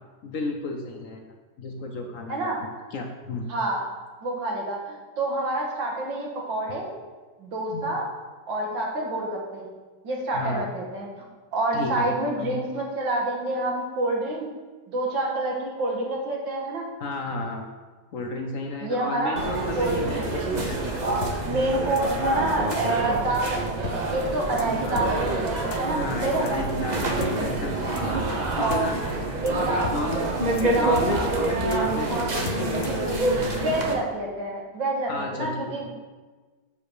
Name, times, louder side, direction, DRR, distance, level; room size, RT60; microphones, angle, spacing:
voice 1, 0.2-1.2 1.6-2.5 2.9-3.5 7.7-7.8 10.3-10.6 11.7-12.5 17.0-17.7 18.1-21.2 25.9-28.3 28.5-29.2 29.9-30.5 30.7-33.7 35.1-35.7, left 2 dB, 60° left, 3 dB, 0.9 m, -33 dB
voice 2, 3.5-3.9 4.2-6.9 7.4-8.1 8.5-9.7 10.0-11.1 11.5-14.5 14.9-16.9 18.8-19.4 19.8-20.4 21.4-26.6 28.6-29.0 29.4-30.0 30.7-31.0 31.7-31.9 33.5-35.9, right 2 dB, 85° right, -1 dB, 2.3 m, -28 dB
sound 1, 19.4-33.9, right 2 dB, 30° right, 0.8 m, -27 dB
sound 2, 21.2-21.3 22.0-22.1 22.7-22.8 23.5-23.6 23.8-24.0 24.2-24.3 24.6-24.7 25.0-25.1 25.7-25.8 26.5-26.6 27.2-27.3 28.0-28.1 28.3-28.4 28.7-28.8 29.1-29.2 29.5-29.6 29.8-30.0 30.2-30.3 30.6-30.7 31.0-31.4 31.7-31.8 32.5-33.0, left 8 dB, 80° left, 0.6 m, -35 dB
6.7 x 5.3 x 6.5 m, 1.3 s
omnidirectional pair, 2.0 m